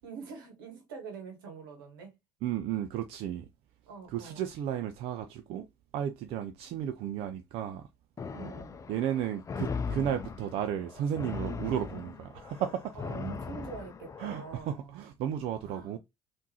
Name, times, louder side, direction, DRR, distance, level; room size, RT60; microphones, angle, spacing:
voice 1, 0.0-2.1 3.9-4.4 8.3-8.8 12.9-15.0 15.6-16.0, right 5 dB, 85° right, 1.0 m, -44 dB
voice 2, 2.4-3.5 4.1-5.7 5.9-7.9 8.9-13.0 14.2-16.0, right 10 dB, 65° right, 0.4 m, -33 dB
sound 1, 8.2-14.6, left 5 dB, 30° left, 0.5 m, -39 dB
3.6 x 2.6 x 2.9 m
hypercardioid pair, 60°, 11 cm